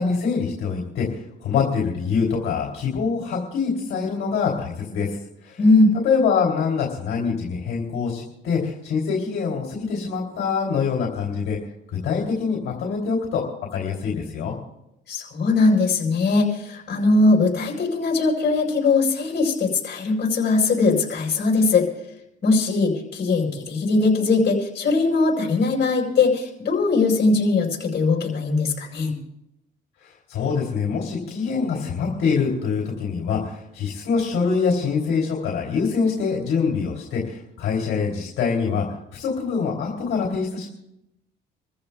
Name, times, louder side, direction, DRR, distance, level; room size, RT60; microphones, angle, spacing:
voice 1, 0.0-5.1 5.4-5.6 6.0-11.6 12.0-13.4 13.7-14.5 30.0-38.9 39.1-40.7, left 5 dB, 85° left, -3 dB, 3.1 m, -24 dB
voice 2, 5.6-5.9 15.1-21.8 22.4-29.1, left 3 dB, 55° left, -2 dB, 4.9 m, -20 dB
28.0 x 14.5 x 2.3 m, 0.85 s
cardioid pair, 90°, 20 cm